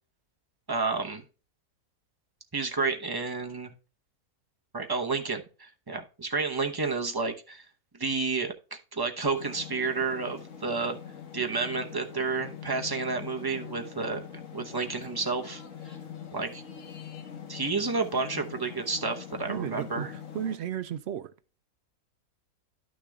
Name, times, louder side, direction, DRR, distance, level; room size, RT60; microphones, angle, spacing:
voice 1, 0.7-1.2 2.5-3.7 4.7-7.6 8.0-11.0 11.3-15.6 16.3-16.6 17.5-20.1, right 4 dB, 20° right, 0.7 m, -30 dB
sound 1, 9.3-20.6, left 8 dB, 60° left, 1.5 m, -43 dB
voice 2, 19.5-21.3, right 10 dB, 70° right, 0.6 m, -34 dB
11.5 x 6.4 x 2.3 m
omnidirectional pair, 1.6 m